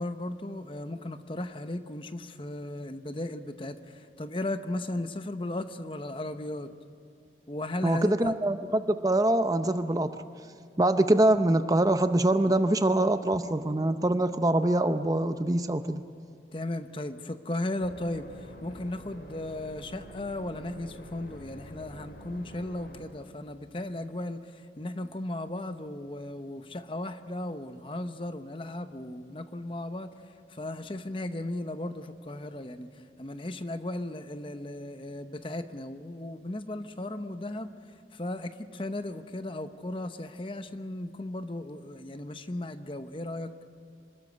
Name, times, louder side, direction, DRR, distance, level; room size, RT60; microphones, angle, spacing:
voice 1, 0.0-6.7 7.5-8.4 16.5-30.1 30.5-32.9 33.2-37.7 38.1-43.5, left 1 dB, 30° left, 9 dB, 0.8 m, -36 dB
voice 2, 7.8-10.1 10.8-16.0, right 1 dB, 20° right, 9 dB, 0.6 m, -24 dB
sound 1, 17.8-23.3, equal, 60° left, 2.6 m, -47 dB
25.5 x 13.5 x 9.6 m, 2.6 s
head